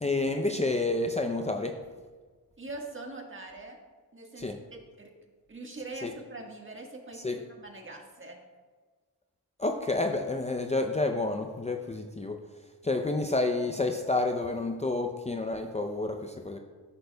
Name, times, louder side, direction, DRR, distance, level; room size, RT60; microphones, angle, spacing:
voice 1, 0.0-1.8 4.4-4.6 6.0-6.1 7.2-7.4 9.6-12.4 12.8-16.6, left 2 dB, 20° left, 3 dB, 0.6 m, -29 dB
voice 2, 2.6-3.8 4.1-5.1 5.5-8.4, right 2 dB, 30° right, 1 dB, 1.6 m, -43 dB
13.0 x 6.1 x 2.3 m, 1.4 s
cardioid pair, 55°, 37 cm